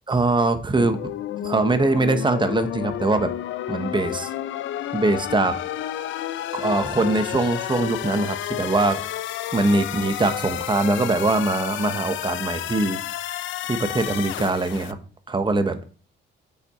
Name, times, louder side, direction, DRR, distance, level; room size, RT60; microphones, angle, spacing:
voice 1, 0.1-1.0 1.4-3.3 3.7-4.3 4.9-5.6 6.5-9.0 9.5-13.0 13.7-15.0 15.3-15.9, right 2 dB, 25° right, 9 dB, 1.1 m, -22 dB
sound 1, 0.8-14.9, left 12 dB, 75° left, 0.5 m, -31 dB
8.3 x 5.8 x 4.3 m, 0.39 s
cardioid pair, 90°, 20 cm